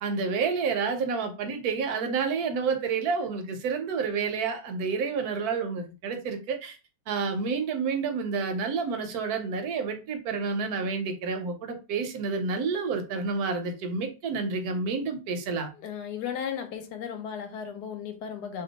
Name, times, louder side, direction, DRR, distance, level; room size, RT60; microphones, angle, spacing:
voice 1, 0.0-6.8 7.1-15.7, right 5 dB, 70° right, 1.0 m, -29 dB
voice 2, 15.8-18.6, left 8 dB, 75° left, 1.1 m, -35 dB
2.8 x 2.2 x 3.9 m
omnidirectional pair, 1.8 m